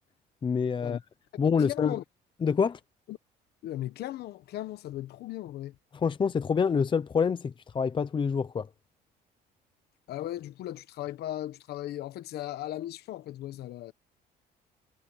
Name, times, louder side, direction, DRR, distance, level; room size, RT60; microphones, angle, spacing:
voice 1, 0.4-1.0 1.4-1.9 2.4-2.8 5.9-8.7, left 6 dB, 30° left, 0.7 m, -26 dB
voice 2, 1.6-2.0 3.1-3.2 3.6-5.8 10.1-13.9, left 13 dB, 70° left, 1.2 m, -37 dB
cardioid pair, 110°, 17 cm